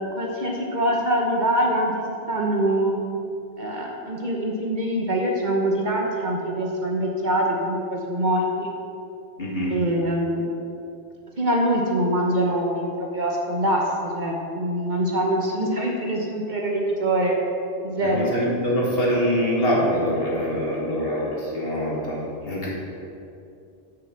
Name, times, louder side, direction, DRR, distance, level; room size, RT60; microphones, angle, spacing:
voice 1, 0.0-3.0 3.6-8.7 9.7-10.4 11.4-17.4 17.8-18.3, right 1 dB, 45° right, -1 dB, 1.1 m, -24 dB
voice 2, 9.4-9.7 18.0-22.2 22.4-22.7, equal, 55° left, -5 dB, 2.1 m, -24 dB
6.6 x 5.8 x 7.1 m, 2.7 s
omnidirectional pair, 1.2 m